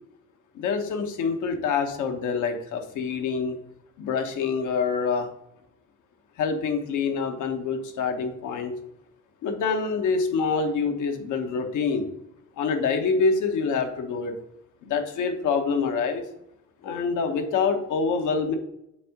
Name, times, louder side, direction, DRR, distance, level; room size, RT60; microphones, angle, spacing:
voice 1, 0.5-3.6 4.0-5.3 6.4-8.7 9.4-12.1 12.6-14.3 14.8-16.3 16.8-18.6, left 5 dB, 85° left, 6 dB, 1.2 m, -26 dB
7.7 x 3.6 x 6.4 m, 0.82 s
cardioid pair, 90°, 30 cm